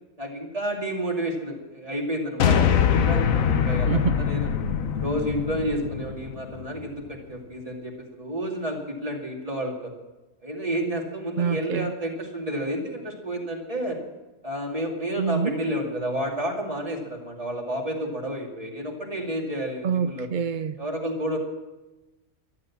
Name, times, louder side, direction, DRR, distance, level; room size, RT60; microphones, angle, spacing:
voice 1, 0.2-4.5 4.9-9.9 10.4-14.0 14.4-20.3 20.8-21.4, right 1 dB, 25° right, 0 dB, 2.6 m, -30 dB
sound 1, 2.4-6.8, left 7 dB, 80° left, 1.3 m, -23 dB
voice 2, 11.4-11.9 15.2-15.5 19.8-20.7, right 7 dB, 60° right, 11 dB, 0.5 m, -26 dB
13.5 x 12.0 x 7.3 m, 1.1 s
omnidirectional pair, 1.4 m